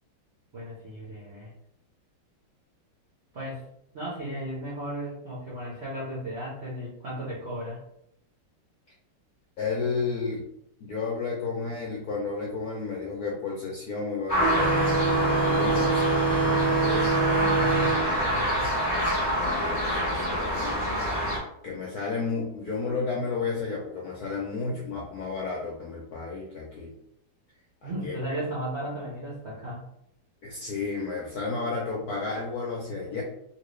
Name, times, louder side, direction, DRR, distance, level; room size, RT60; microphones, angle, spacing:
voice 1, 0.5-1.5 3.3-3.6 3.9-7.8 17.3-18.7 27.8-29.8, equal, 65° right, -6 dB, 0.6 m, -35 dB
voice 2, 9.6-10.5 10.8-17.0 19.6-20.8 21.6-26.9 27.8-28.2 30.4-33.2, left 4 dB, 75° left, -3 dB, 0.8 m, -32 dB
sound 1, 14.3-21.4, equal, 25° left, 1.0 m, -27 dB
sound 2, 14.4-19.5, right 4 dB, ahead, 0.5 m, -26 dB
2.9 x 2.9 x 3.1 m, 0.76 s
omnidirectional pair, 2.3 m